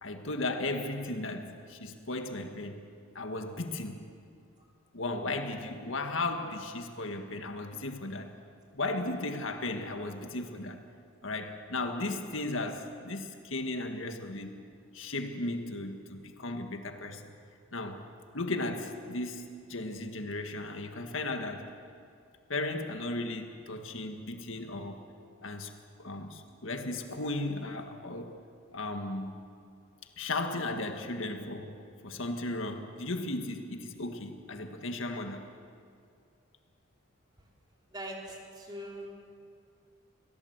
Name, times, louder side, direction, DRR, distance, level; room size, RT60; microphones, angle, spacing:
voice 1, 0.0-2.8 3.2-4.1 4.9-8.4 8.7-10.8 11.2-14.6 14.9-17.3 17.7-18.1 18.3-21.7 22.5-25.0 25.4-28.4 28.7-29.4 30.2-35.5, left 2 dB, 80° left, 1.7 m, -36 dB
voice 2, 37.9-39.1, right 1 dB, 20° right, 3.3 m, -41 dB
23.5 x 16.5 x 8.0 m
head